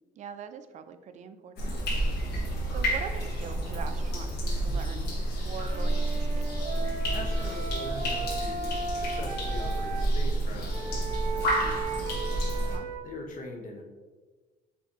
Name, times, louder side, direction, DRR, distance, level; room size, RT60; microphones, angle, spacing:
voice 1, 0.2-1.7 2.1-2.3 2.7-6.5 12.6-12.9, right 7 dB, 45° right, 9 dB, 0.4 m, -43 dB
sound 1, 1.6-12.8, right 1 dB, 75° left, 1.1 m, -30 dB
voice 2, 2.2-2.5 7.1-12.4 13.0-13.8, left 2 dB, 55° left, 1 dB, 1.0 m, -42 dB
Wind instrument woodwind instrument, 5.7-10.1 10.7-13.0, right 4 dB, 75° right, 0.9 m, -36 dB
4.2 x 4.0 x 2.9 m, 1.3 s
cardioid pair, 110°, 17 cm